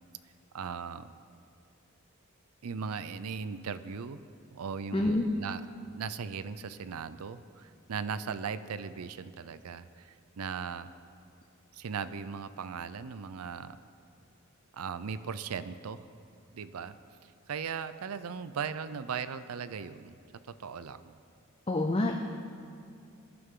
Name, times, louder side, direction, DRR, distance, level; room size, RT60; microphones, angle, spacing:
voice 1, 0.5-1.1 2.6-4.2 4.5-5.6 5.9-10.9 11.7-13.8 14.7-16.0 16.5-17.0 17.2-20.1 20.5-21.1, right 6 dB, 85° right, 13 dB, 0.5 m, -38 dB
voice 2, 4.9-5.3 21.7-22.1, left 2 dB, 25° left, 3 dB, 0.6 m, -27 dB
21.5 x 11.0 x 3.8 m, 2.5 s
head